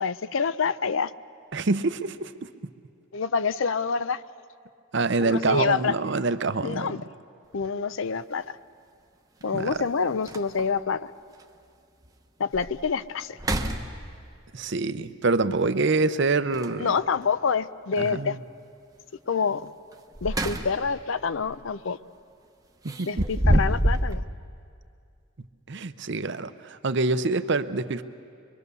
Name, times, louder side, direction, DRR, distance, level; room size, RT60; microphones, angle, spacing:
voice 1, 0.0-1.1 3.1-4.2 5.2-5.9 6.6-7.0 7.5-8.6 9.4-11.1 12.4-13.4 16.8-18.4 19.3-19.7 20.2-22.0 23.1-24.2, left 5 dB, 65° left, 16 dB, 0.5 m, -27 dB
voice 2, 1.5-2.3 4.9-6.9 9.5-9.8 14.5-16.9 18.0-18.4 22.8-23.2 25.7-28.0, right 3 dB, 55° right, 12 dB, 0.7 m, -26 dB
sound 1, 7.5-7.7 9.4-9.5 9.9-10.0 10.3-10.8 11.4-11.5 12.0-12.1 12.5-12.9 13.3-14.4 16.5-17.2 19.9-21.0 21.3-21.6 22.9-24.2, right 1 dB, 15° right, 0.9 m, -27 dB
23.5 x 23.5 x 6.9 m, 2.4 s
head